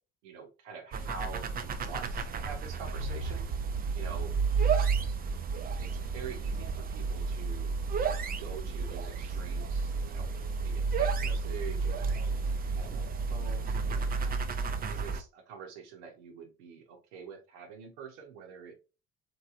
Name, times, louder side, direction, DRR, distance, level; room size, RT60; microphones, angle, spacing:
voice 1, 0.2-3.5 3.9-4.3 5.8-7.7 8.3-10.3 10.6-12.4 12.8-14.3 14.9-18.7, right 6 dB, 80° right, 4 dB, 0.8 m, -46 dB
sound 1, 0.9-15.2, right 5 dB, 30° right, 0.4 m, -31 dB
3.0 x 2.6 x 2.4 m, 0.32 s
hypercardioid pair, 55°, 34 cm